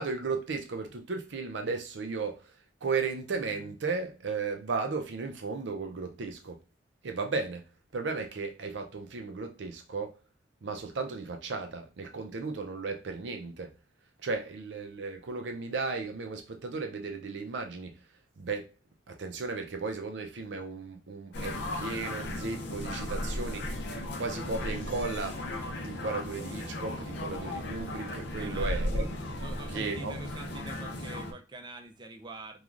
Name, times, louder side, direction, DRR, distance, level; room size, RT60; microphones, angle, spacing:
voice 1, 0.0-2.5 2.8-6.6 7.0-7.6 7.9-10.2 10.6-13.7 14.2-18.0 18.4-18.7 19.1-23.7 24.2-25.4 25.7-29.1 29.7-30.2, right 4 dB, 75° right, 0.5 m, -35 dB
sound 1, 21.3-31.3, left 1 dB, 65° left, 0.5 m, -35 dB
voice 2, 28.4-28.8 29.3-32.6, right 2 dB, 25° right, 0.4 m, -44 dB
3.1 x 2.4 x 2.4 m
head